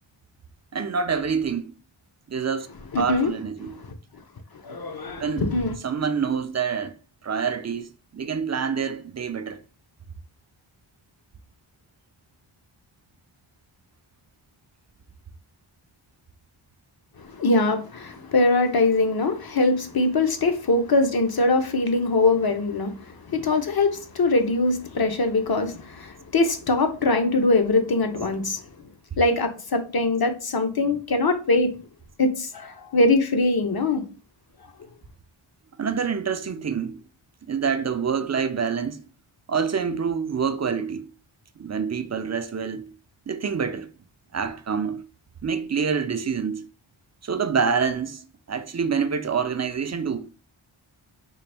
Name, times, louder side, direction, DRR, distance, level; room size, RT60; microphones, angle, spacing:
voice 1, 0.7-1.7 2.3-2.7 3.0-3.7 5.2-5.5 5.8-6.9 7.2-9.6 35.8-37.0 37.4-39.0 39.5-41.1 41.6-42.9 43.3-43.9 44.3-45.0 45.4-46.7 47.2-50.3, right 6 dB, 35° right, 0.4 m, -26 dB
voice 2, 2.9-3.3 4.6-5.8 17.2-28.6 29.2-31.7 32.2-34.0, left 2 dB, 45° left, 0.7 m, -22 dB
3.9 x 2.5 x 3.3 m
wide cardioid pair, 70°, 50 cm